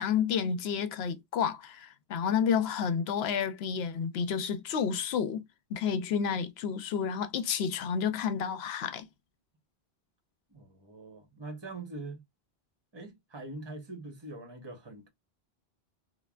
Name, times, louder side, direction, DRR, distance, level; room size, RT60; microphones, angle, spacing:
voice 1, 0.0-5.4 5.7-9.1, left 7 dB, 75° left, 0.8 m, -30 dB
voice 2, 10.5-12.2 12.9-15.1, right 2 dB, 25° right, 1.0 m, -43 dB
3.1 x 2.2 x 2.2 m
omnidirectional pair, 1.1 m